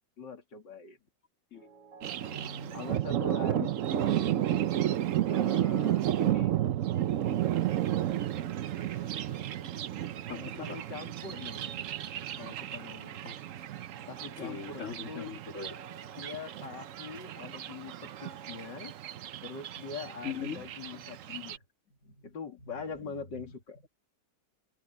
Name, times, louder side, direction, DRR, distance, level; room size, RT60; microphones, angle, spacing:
voice 1, 0.2-1.0 2.7-4.3 5.3-6.6 10.3-11.9 12.4-13.2 14.1-15.4 16.1-18.9 19.4-21.6 22.2-23.8, left 5 dB, 75° left, 3.2 m, -43 dB
sound 1, 1.5-18.7, right 4 dB, 90° right, 5.6 m, -56 dB
voice 2, 2.0-2.8 3.5-3.7 9.5-9.7 10.3-10.8 13.2-13.4 14.4-15.7 20.2-20.6 22.1-22.2, left 6 dB, 45° left, 2.4 m, -40 dB
Thunder, 2.0-21.6, right 12 dB, 60° right, 0.9 m, -32 dB
omnidirectional pair, 1.9 m